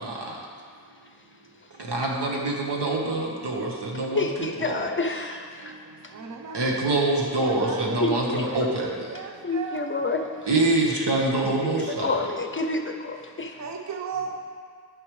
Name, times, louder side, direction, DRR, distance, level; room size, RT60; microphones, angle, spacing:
voice 1, 1.9-3.7 4.0-4.2 4.7-4.8 6.5-8.9 10.5-12.1, right 2 dB, 80° right, -2 dB, 1.4 m, -25 dB
voice 2, 3.9-5.7 6.0-6.1 8.0-8.7 9.4-10.6 11.8-13.6, left 3 dB, 30° left, 4 dB, 0.6 m, -29 dB
voice 3, 6.1-8.2 9.1-10.1 13.6-14.4, right 5 dB, 45° right, 3 dB, 0.6 m, -36 dB
13.5 x 5.5 x 3.2 m, 2.1 s
wide cardioid pair, 100°, 41 cm